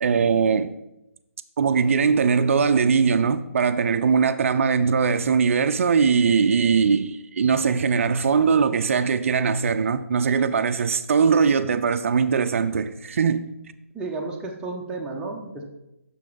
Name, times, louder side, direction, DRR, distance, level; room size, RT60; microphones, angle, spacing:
voice 1, 0.0-0.7 1.6-13.5, right 6 dB, 60° right, 0.4 m, -21 dB
voice 2, 13.9-15.6, right 3 dB, 10° right, 0.7 m, -32 dB
7.2 x 6.0 x 3.9 m
figure-of-eight pair, 145°, 8 cm